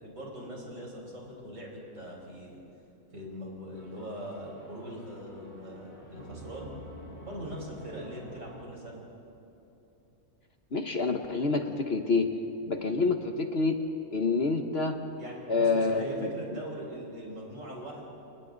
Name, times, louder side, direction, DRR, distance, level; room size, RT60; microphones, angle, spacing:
voice 1, 0.0-2.6 3.1-6.7 7.2-9.0 15.2-18.1, right 1 dB, 60° right, -3 dB, 5.8 m, -41 dB
sound 1, 3.7-9.3, equal, 70° left, 5.9 m, -49 dB
voice 2, 10.7-12.3 12.6-13.8 14.1-15.0 15.5-16.3, left 3 dB, 50° left, 5 dB, 1.3 m, -27 dB
29.0 x 29.0 x 4.0 m, 2.9 s
omnidirectional pair, 1.5 m